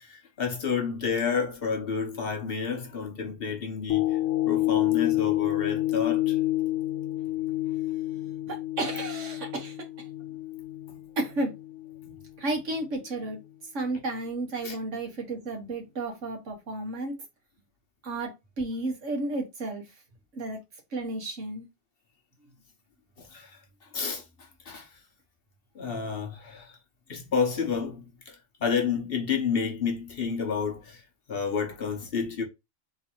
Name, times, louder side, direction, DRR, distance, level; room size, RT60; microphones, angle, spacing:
voice 1, 0.0-4.2 4.4-6.4 12.0-12.1 14.6-14.8 23.2-23.6 23.9-24.2 24.6-24.9 25.7-26.8 27.1-31.0 31.3-32.4, left 6 dB, 50° left, 1.1 m, -30 dB
sound 1, 3.9-12.3 12.8-12.9, left 16 dB, 85° left, 0.9 m, -28 dB
voice 2, 8.5-9.8 11.2-11.5 12.4-13.4 13.7-17.1 18.0-18.3 18.6-19.8 20.3-20.6 20.9-21.6, right 2 dB, 75° right, 1.7 m, -32 dB
3.8 x 2.8 x 4.3 m
omnidirectional pair, 1.3 m